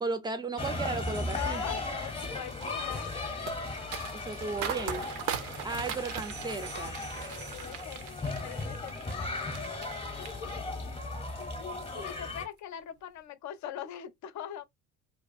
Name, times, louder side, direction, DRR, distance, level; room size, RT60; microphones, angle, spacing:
voice 1, 0.0-1.6 4.2-5.1 5.6-7.0, right 3 dB, 10° right, 0.5 m, -35 dB
sound 1, 0.6-12.5, left 2 dB, 15° left, 0.8 m, -37 dB
sound 2, 1.0-2.6 6.2-8.7, right 6 dB, 90° right, 1.1 m, -52 dB
voice 2, 1.3-3.1 5.4-5.7 7.2-11.5 12.0-14.6, left 11 dB, 40° left, 0.6 m, -42 dB
sound 3, 1.7-10.0 10.3-10.9 11.3-11.6, right 9 dB, 65° right, 0.6 m, -40 dB
2.5 x 2.2 x 2.5 m
hypercardioid pair, 55°, 46 cm